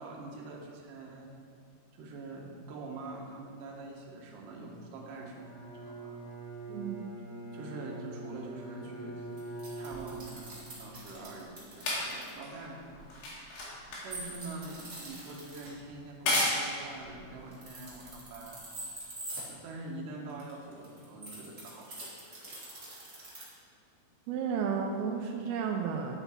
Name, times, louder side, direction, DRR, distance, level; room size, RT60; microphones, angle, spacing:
voice 1, 0.0-1.3 1.9-5.5 5.7-6.2 7.5-9.3 9.8-13.5 14.0-19.0 19.5-22.1, right 2 dB, 65° right, -1 dB, 2.5 m, -45 dB
Bowed string instrument, 5.3-10.8, right 2 dB, 40° left, 1.5 m, -43 dB
voice 2, 6.7-7.1 24.3-26.2, right 6 dB, 85° right, 2 dB, 2.5 m, -33 dB
sound 1, 9.4-12.3 14.1-15.7 17.4-19.4 20.3-23.4, right 1 dB, 30° right, 1.5 m, -44 dB
sound 2, 9.9-18.5 19.4-19.5, left 1 dB, 80° left, 3.9 m, -36 dB
10.0 x 7.0 x 4.2 m, 2.2 s
omnidirectional pair, 4.4 m